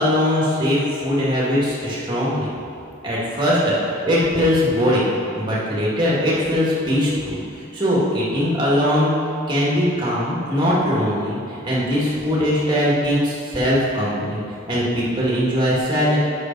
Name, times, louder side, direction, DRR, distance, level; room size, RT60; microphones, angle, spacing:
voice 1, 0.0-2.5 3.0-9.2 9.5-14.4 14.7-16.2, equal, 20° right, -7 dB, 1.8 m, -20 dB
6.7 x 6.3 x 5.2 m, 2.6 s
head